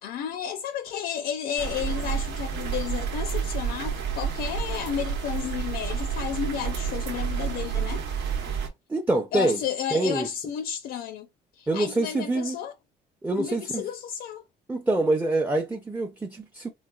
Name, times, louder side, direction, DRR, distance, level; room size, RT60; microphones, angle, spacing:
voice 1, 0.0-8.0 9.3-11.3 11.5-12.7 13.4-14.4, left 9 dB, 70° left, 0.5 m, -32 dB
sound 1, 1.6-8.7, right 7 dB, 80° right, 1.0 m, -30 dB
voice 2, 8.9-9.6 9.9-10.3 11.7-12.6 13.2-13.8 14.7-16.7, right 2 dB, 10° right, 0.5 m, -25 dB
4.0 x 2.3 x 2.3 m
cardioid pair, 110°, 17 cm